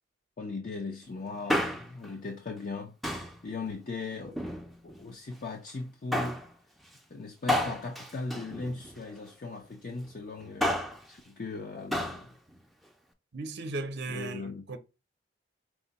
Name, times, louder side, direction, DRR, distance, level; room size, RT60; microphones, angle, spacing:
voice 1, 0.4-2.9 3.4-4.4 4.8-6.4 7.1-10.8 11.1-12.3 14.1-14.7, left 3 dB, 45° left, 0.5 m, -38 dB
Male speech man speaking, 1.3-2.1 3.0-3.4 4.2-5.0 6.1-6.5 7.5-9.1 10.4-11.0 11.9-12.2 12.5-12.6, left 1 dB, ahead, 0.4 m, -31 dB
voice 2, 13.3-14.8, right 2 dB, 60° right, 0.6 m, -36 dB
4.8 x 2.1 x 3.9 m
head